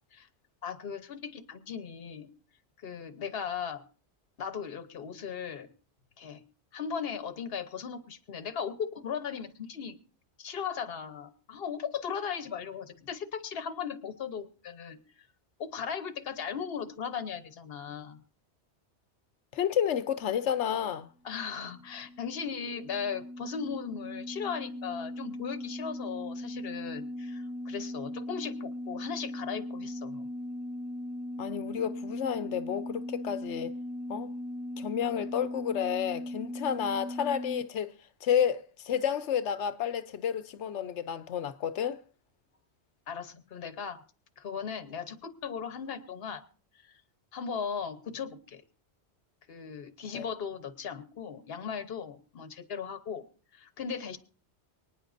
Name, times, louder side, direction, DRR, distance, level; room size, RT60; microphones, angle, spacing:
voice 1, 0.6-2.3 2.8-3.8 4.4-5.7 6.2-6.4 6.7-10.0 10.4-15.0 15.6-18.2 21.2-30.3 43.1-44.0 44.4-46.4 47.3-48.6 49.5-53.2 53.5-54.2, left 7 dB, 60° left, 1.2 m, -37 dB
voice 2, 19.5-21.1 31.4-33.7 34.1-34.3 34.8-37.9 38.2-42.0 50.1-50.3, left 9 dB, 85° left, 1.1 m, -31 dB
sound 1, 21.4-37.6, left 1 dB, 15° right, 0.3 m, -39 dB
24.0 x 9.7 x 2.6 m
omnidirectional pair, 1.1 m